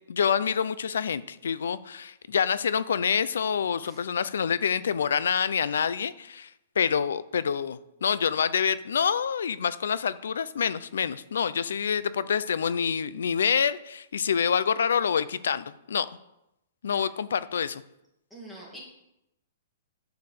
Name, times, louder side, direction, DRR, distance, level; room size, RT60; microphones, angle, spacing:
voice 1, 0.1-6.5 6.8-16.1 16.8-17.8, left 7 dB, 85° left, 16 dB, 0.6 m, -27 dB
voice 2, 18.3-18.8, right 1 dB, ahead, -6 dB, 2.2 m, -45 dB
10.5 x 4.9 x 6.5 m, 0.86 s
hypercardioid pair, 175°, 0 cm